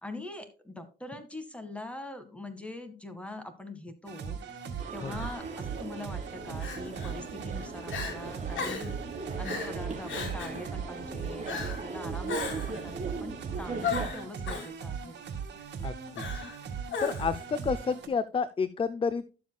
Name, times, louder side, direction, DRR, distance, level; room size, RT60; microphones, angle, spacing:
voice 1, 0.0-4.4 4.9-8.9 9.2-15.2, left 2 dB, 5° left, 8 dB, 1.8 m, -43 dB
sound 1, 4.0-18.1, right 6 dB, 60° right, 2.0 m, -39 dB
sound 2, 4.8-14.1, right 4 dB, 40° right, 3.3 m, -39 dB
Crying sobbing, 5.1-5.3 6.6-7.1 7.6-7.7 7.9-8.2 8.6-8.9 9.4-9.7 10.1-10.6 11.5-11.8 12.3-12.8 13.8-14.7 16.2-16.6 16.9-17.4, left 5 dB, 70° left, 2.8 m, -35 dB
voice 2, 15.8-16.4 17.0-19.3, left 5 dB, 25° left, 14 dB, 0.5 m, -30 dB
12.0 x 7.2 x 2.3 m, 0.33 s
cardioid pair, 90°, 20 cm